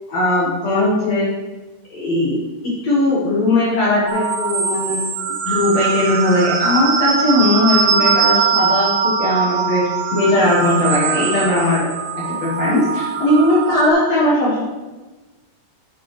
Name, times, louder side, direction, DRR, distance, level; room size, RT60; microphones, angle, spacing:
voice 1, 0.1-1.3 1.9-5.0 5.5-9.8 10.1-11.9 12.3-14.6, left 1 dB, 55° left, -7 dB, 2.4 m, -18 dB
sound 1, 4.1-13.9, right 6 dB, 85° right, 2.4 m, -21 dB
9.2 x 8.7 x 3.3 m, 1.2 s
omnidirectional pair, 3.9 m